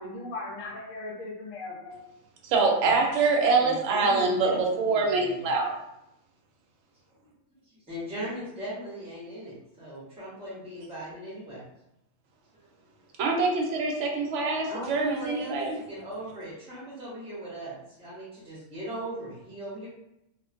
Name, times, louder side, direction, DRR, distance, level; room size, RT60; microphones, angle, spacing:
voice 1, 0.0-2.0, left 2 dB, 70° left, -2 dB, 1.0 m, -38 dB
voice 2, 2.4-5.7 13.2-15.8, right 3 dB, 70° right, 0 dB, 0.8 m, -25 dB
voice 3, 3.6-5.5 7.9-11.6 14.7-19.9, equal, 5° right, -8 dB, 0.6 m, -38 dB
2.4 x 2.1 x 2.4 m, 0.84 s
omnidirectional pair, 1.5 m